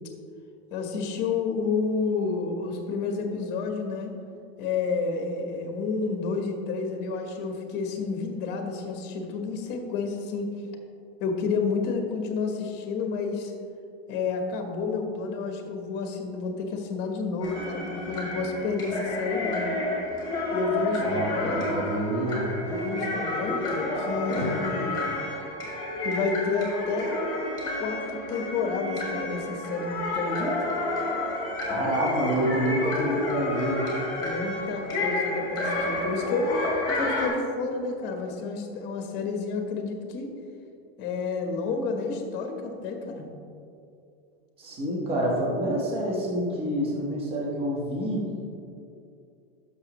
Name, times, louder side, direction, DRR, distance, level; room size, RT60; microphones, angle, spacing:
voice 1, 0.7-4.1 4.6-10.5 11.2-13.5 14.1-19.8 20.5-21.7 22.7-25.0 26.0-27.2 27.8-30.6 34.2-40.3 41.0-43.3, left 4 dB, 35° left, 4 dB, 1.1 m, -30 dB
sound 1, 17.4-37.3, left 1 dB, 15° left, 2.0 m, -30 dB
voice 2, 21.0-22.5 24.3-24.6 31.7-33.9 44.6-48.3, equal, 20° right, -3 dB, 1.3 m, -28 dB
12.0 x 6.4 x 3.0 m, 2.5 s
supercardioid pair, 160°, 31 cm